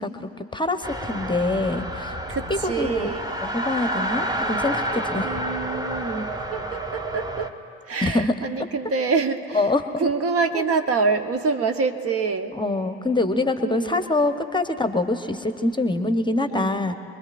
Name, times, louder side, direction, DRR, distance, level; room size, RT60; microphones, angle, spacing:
voice 1, 0.0-2.2 2.5-3.1 3.5-5.3 8.0-8.3 9.5-10.1 12.5-16.9, left 2 dB, 15° left, 8 dB, 0.9 m, -24 dB
sound 1, 0.8-7.5, right 1 dB, 10° right, 1.2 m, -29 dB
voice 2, 2.3-3.3 5.2-7.5 7.9-9.7 10.0-12.5 13.6-14.0 16.5-16.8, right 4 dB, 45° right, 6 dB, 1.0 m, -26 dB
26.5 x 21.0 x 2.5 m, 2.9 s
figure-of-eight pair, 50°, 32 cm